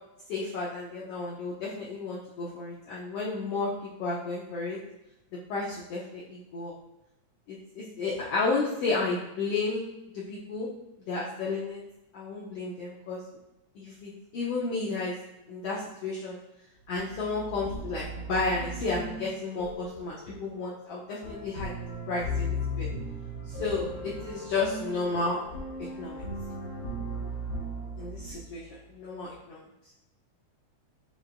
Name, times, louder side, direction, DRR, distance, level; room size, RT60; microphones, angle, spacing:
voice 1, 0.3-4.8 5.5-6.7 7.5-9.8 10.1-10.7 11.1-11.8 12.1-13.2 13.8-15.2 15.5-16.4 16.9-21.7 22.1-22.9 23.6-25.4 26.0-26.2 28.0-29.6, left 3 dB, 80° left, -5 dB, 1.4 m, -32 dB
sound 1, 16.8-28.9, equal, 60° left, 1.2 m, -37 dB
6.1 x 3.1 x 2.5 m, 0.93 s
omnidirectional pair, 3.5 m